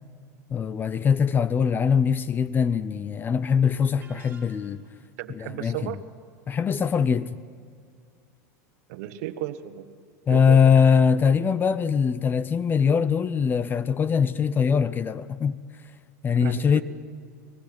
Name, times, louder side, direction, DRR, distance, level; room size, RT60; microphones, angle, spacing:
voice 1, 0.5-4.8 5.3-5.9 6.5-7.3 10.3-15.6 16.2-16.8, left 6 dB, 20° left, 0.6 m, -22 dB
sound 1, 4.0-5.0, right 4 dB, 20° right, 2.4 m, -52 dB
voice 2, 5.2-6.0 8.9-9.9 10.3-10.6 16.3-16.8, right 13 dB, 65° right, 1.3 m, -34 dB
24.0 x 20.5 x 6.1 m
supercardioid pair, 130°, 9 cm